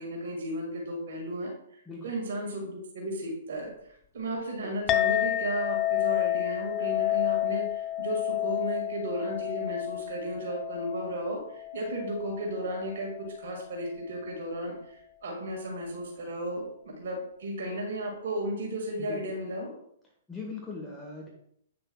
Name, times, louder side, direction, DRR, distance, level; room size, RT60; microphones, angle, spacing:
voice 1, 0.0-19.7, right 1 dB, 55° right, 1 dB, 1.8 m, -34 dB
Chink clink, 4.9-13.6, left 13 dB, 25° left, 0.3 m, -30 dB
voice 2, 20.3-21.3, left 4 dB, 5° left, -3 dB, 1.2 m, -40 dB
8.2 x 6.6 x 2.3 m, 0.70 s
figure-of-eight pair, 115°, 0 cm